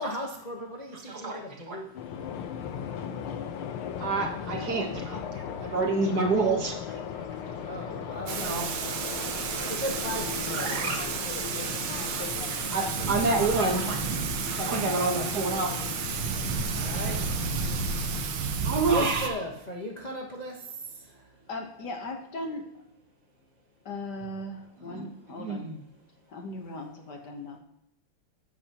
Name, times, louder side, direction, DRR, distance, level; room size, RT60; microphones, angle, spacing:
voice 1, 0.0-2.4 5.3-5.7 7.3-8.6 9.7-11.1 14.7-15.0 16.7-17.8 18.9-21.2, left 1 dB, 25° left, -1 dB, 1.0 m, -38 dB
voice 2, 0.9-1.8 4.0-7.8 8.4-8.7 9.3-9.8 10.1-11.1 11.9-12.3 12.6-14.0 14.5-16.0 16.6-16.7 18.6-19.4 24.8-25.0 25.4-25.7, right 3 dB, 50° right, 2 dB, 1.8 m, -29 dB
sound 1, 1.9-18.3, left 8 dB, 80° left, 1.8 m, -37 dB
Thunder / Rain, 8.3-19.3, right 6 dB, 70° right, 1.8 m, -32 dB
voice 3, 21.5-22.7 23.8-25.6 26.3-27.6, left 2 dB, 55° left, 3 dB, 1.6 m, -38 dB
14.0 x 9.9 x 3.0 m, 0.82 s
omnidirectional pair, 2.4 m